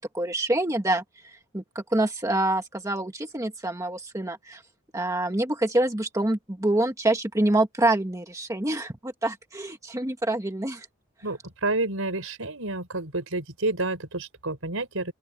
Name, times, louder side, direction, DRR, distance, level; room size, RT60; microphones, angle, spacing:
voice 1, 0.0-4.6 4.9-10.9, right 1 dB, 15° right, 1.4 m, -26 dB
voice 2, 11.2-15.1, right 2 dB, 70° right, 6.3 m, -29 dB
open air
head